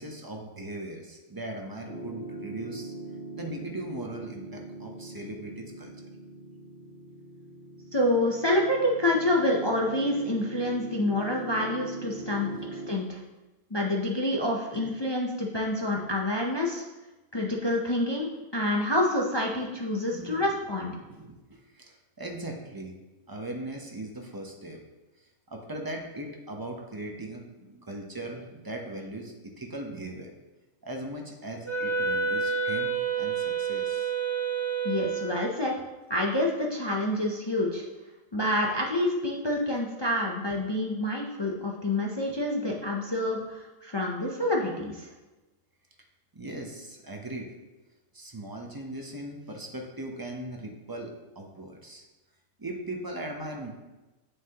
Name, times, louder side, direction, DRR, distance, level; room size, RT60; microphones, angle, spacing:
voice 1, 0.0-2.9 3.3-5.9 10.6-10.7 12.1-12.7 14.7-14.9 19.7-20.4 21.0-23.0 23.3-24.9 25.2-30.4 30.8-34.1 46.3-47.5 48.1-52.0 52.6-53.7, right 1 dB, 25° right, 1 dB, 0.5 m, -39 dB
Piano, 1.9-12.9, right 2 dB, 75° right, 3.0 m, -42 dB
voice 2, 7.9-13.2 13.7-16.8 17.3-18.3 18.5-20.9 34.8-35.7 36.1-37.8 38.3-45.1, left 1 dB, 40° left, -1 dB, 0.4 m, -27 dB
Wind instrument woodwind instrument, 31.6-35.5, right 5 dB, 20° left, 2.0 m, -29 dB
7.3 x 6.5 x 2.9 m, 1.1 s
omnidirectional pair, 1.5 m